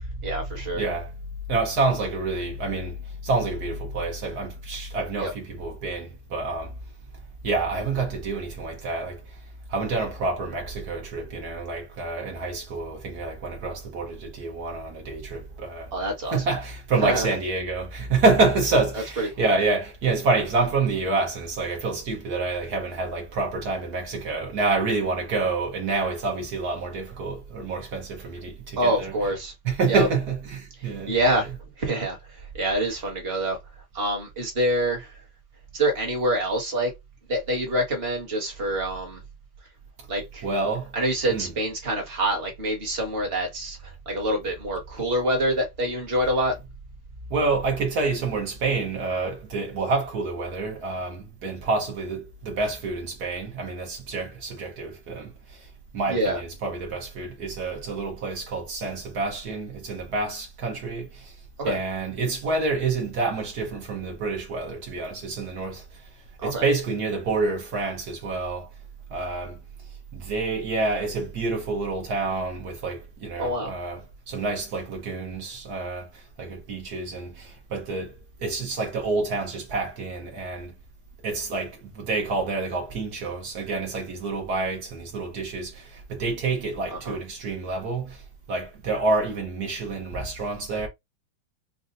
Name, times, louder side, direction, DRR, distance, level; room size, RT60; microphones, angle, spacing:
voice 1, 0.2-0.8 5.2-5.3 15.9-16.4 17.0-17.3 19.2-19.5 28.8-29.5 29.9-30.1 30.8-31.5 31.8-33.6 33.9-35.1 35.7-36.9 37.3-39.2 40.1-40.4 40.9-46.5 56.1-56.4 61.6-61.8 66.4-66.7 73.4-73.7 87.0-87.2, right 1 dB, 30° right, 1.5 m, -26 dB
voice 2, 0.7-1.1 1.5-6.7 7.4-9.4 9.7-15.9 16.3-29.1 29.6-31.1 40.4-40.9 41.3-41.5 47.3-55.7 55.9-61.3 61.6-66.1 66.4-68.7 69.1-69.6 70.1-80.7 81.2-88.2 88.5-90.9, right 3 dB, 55° right, 1.4 m, -28 dB
5.4 x 2.3 x 2.6 m
omnidirectional pair, 2.2 m